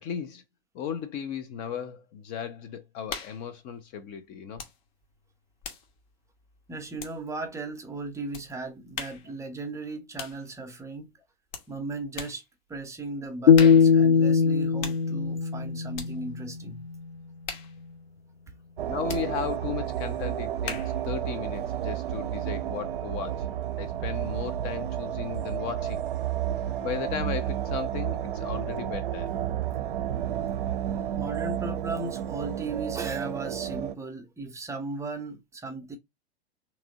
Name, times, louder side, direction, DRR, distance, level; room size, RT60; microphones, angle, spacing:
voice 1, 0.0-0.4 0.7-4.6 18.9-23.5 23.8-26.0 26.8-29.3 30.8-30.9, left 8 dB, 30° left, 0.5 m, -35 dB
sound 1, 3.1-3.5 4.5-4.8 5.1-7.5 8.3-8.5 8.9-9.3 10.2-10.4 11.5-11.7 12.1-12.4 13.5-14.0 14.8-15.1 15.9-16.2 17.4-17.8 19.1-19.3 20.6-21.0, left 6 dB, 45° left, 1.2 m, -39 dB
voice 2, 6.7-11.1 11.7-12.4 12.7-16.8 30.4-30.5 31.2-36.0, right 3 dB, 10° right, 0.7 m, -36 dB
sound 2, 13.5-16.6, left 6 dB, 85° left, 0.5 m, -20 dB
sound 3, 18.8-34.0, right 11 dB, 55° right, 0.6 m, -31 dB
3.4 x 3.0 x 3.8 m
figure-of-eight pair, 95°, 31 cm